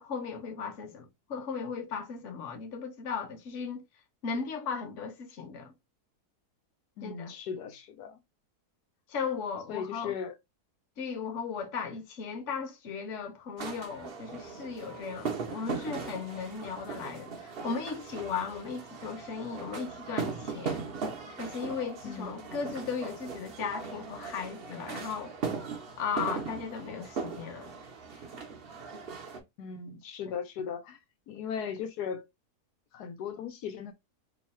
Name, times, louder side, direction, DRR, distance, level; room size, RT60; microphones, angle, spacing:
voice 1, 0.0-3.8 4.2-5.7 7.0-7.3 9.1-10.1 11.0-20.9 21.4-25.3 26.0-27.7, left 5 dB, 55° left, 1.1 m, -36 dB
voice 2, 7.0-8.2 9.7-10.4 22.0-22.4 29.6-31.0 31.3-32.2 32.9-33.9, left 7 dB, 85° left, 1.2 m, -37 dB
sound 1, 13.6-29.4, right 5 dB, 50° right, 0.8 m, -39 dB
3.1 x 2.2 x 4.2 m
omnidirectional pair, 1.7 m